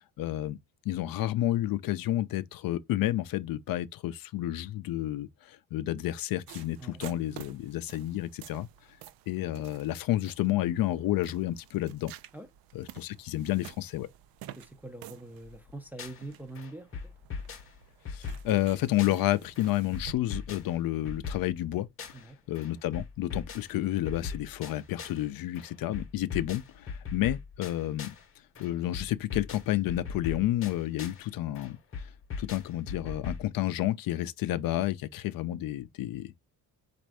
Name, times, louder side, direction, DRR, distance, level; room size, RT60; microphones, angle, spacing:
voice 1, 0.2-0.6 0.8-8.7 9.3-12.1 12.7-14.1 18.1-21.9 22.5-28.1 28.6-31.8 32.4-36.4, left 14 dB, 65° left, 0.5 m, -30 dB
sound 1, 6.5-20.1, right 12 dB, 70° right, 0.5 m, -50 dB
voice 2, 14.6-17.1 22.1-22.4, right 2 dB, 5° right, 0.4 m, -44 dB
sound 2, 15.4-16.3 16.5-19.3 19.5-22.3 22.5-25.3 25.5-28.3 28.5-31.3 31.5-33.5, left 5 dB, 35° left, 0.9 m, -40 dB
4.2 x 2.5 x 4.7 m
cardioid pair, 155°, 38 cm